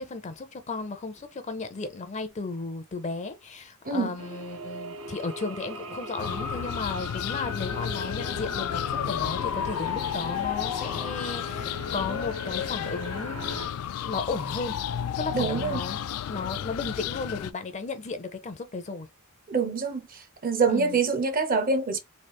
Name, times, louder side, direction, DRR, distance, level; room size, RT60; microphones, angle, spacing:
voice 1, 0.0-13.6 14.0-14.8 15.2-16.0 16.3-19.1 20.7-21.0, left 3 dB, 35° left, 0.5 m, -34 dB
voice 2, 3.8-4.2 15.3-15.8 19.5-22.0, right 4 dB, 40° right, 0.6 m, -26 dB
sound 1, 4.2-13.7, equal, 75° right, 0.7 m, -39 dB
sound 2, 6.2-17.5, left 9 dB, 85° left, 0.3 m, -32 dB
3.2 x 2.4 x 2.9 m
head